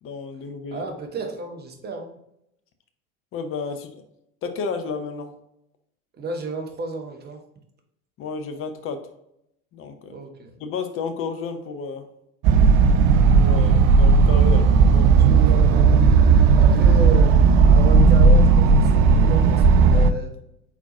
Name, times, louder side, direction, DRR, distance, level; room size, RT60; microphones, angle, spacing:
voice 1, 0.0-0.8 3.3-4.0 4.4-5.3 8.2-9.1 9.7-10.2 10.6-12.1 13.3-15.1, left 4 dB, 30° left, 7 dB, 0.7 m, -32 dB
voice 2, 0.7-2.1 6.2-7.4 10.1-10.5 15.3-16.2 16.6-17.3 17.7-20.3, right 3 dB, 25° right, 4 dB, 0.9 m, -32 dB
sound 1, 12.4-20.1, right 5 dB, 45° right, 0.5 m, -15 dB
4.5 x 4.1 x 2.6 m, 0.78 s
figure-of-eight pair, 80°, 42 cm